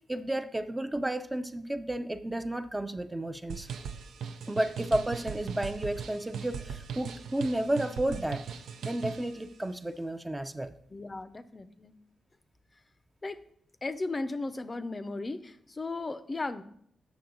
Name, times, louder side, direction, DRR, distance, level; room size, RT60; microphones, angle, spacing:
voice 1, 0.1-3.7 4.5-8.4 8.8-10.7, right 1 dB, 15° right, 8 dB, 0.5 m, -32 dB
sound 1, 3.5-9.3, right 6 dB, 80° right, 0.4 m, -39 dB
voice 2, 10.9-11.9 13.2-13.4 13.8-16.6, left 3 dB, 35° left, 12 dB, 0.5 m, -36 dB
7.1 x 6.2 x 3.8 m, 0.67 s
supercardioid pair, 55°, 0 cm